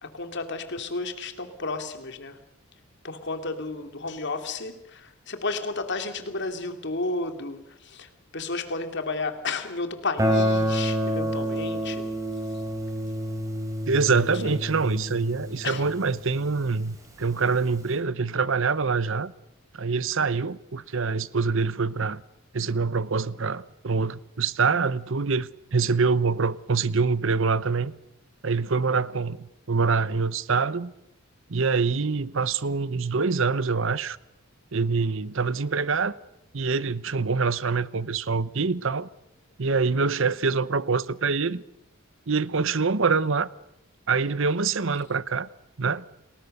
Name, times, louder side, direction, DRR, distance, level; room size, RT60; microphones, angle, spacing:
voice 1, 0.0-2.4 3.0-12.0 14.4-14.6 15.6-15.9, left 3 dB, 55° left, 2.7 m, -32 dB
Guitar, 10.2-16.9, equal, 15° right, 4.7 m, -28 dB
voice 2, 13.9-19.3 19.7-22.2 22.5-27.9 28.4-30.9 31.5-34.2 34.7-36.2 36.5-39.1 39.6-41.6 42.3-43.5 44.1-45.5 45.8-46.0, right 4 dB, 60° right, 0.8 m, -25 dB
29.5 x 20.0 x 6.7 m
head